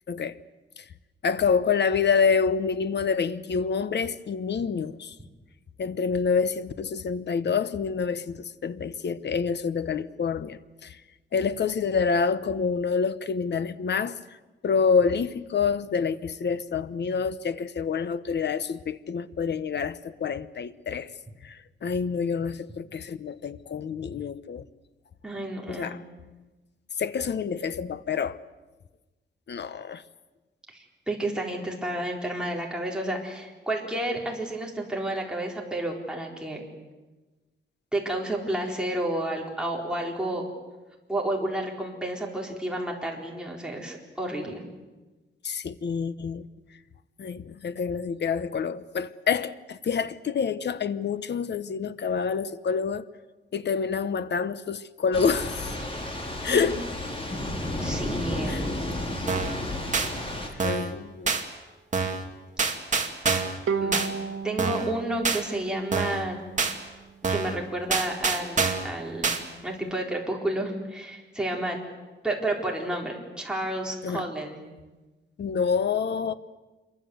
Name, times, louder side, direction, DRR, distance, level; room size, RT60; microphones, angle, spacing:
voice 1, 0.1-0.4 0.8-0.9 1.2-5.2 5.8-11.0 11.3-14.2 14.6-21.1 21.4-24.6 25.7-26.0 27.0-28.4 29.5-30.0 45.4-46.5 47.2-53.0 53.5-55.8 56.4-56.8 58.5-58.7 60.6-61.4 74.0-74.3 75.4-76.3, left 6 dB, 55° left, 1.0 m, -27 dB
voice 2, 25.2-26.0 30.7-36.6 37.9-40.5 41.1-44.6 56.4-56.7 57.8-58.6 63.8-64.0 64.4-66.4 67.3-71.8 72.2-74.6, right 1 dB, 5° right, 4.2 m, -31 dB
Thunder / Rain, 55.1-60.5, left 1 dB, 25° left, 3.9 m, -32 dB
sound 1, 59.3-59.6 59.9-60.1 60.6-60.9 61.3-61.4 61.9-62.2 62.6-63.6 63.9-64.1 64.6-64.9 65.2-65.4 65.9-66.2 66.6-66.7 67.2-67.6 67.9-68.9 69.2-69.4, right 4 dB, 35° right, 2.2 m, -26 dB
Bowed string instrument, 63.7-67.0, right 5 dB, 90° right, 1.2 m, -34 dB
26.5 x 23.0 x 7.9 m
wide cardioid pair, 165°, 21 cm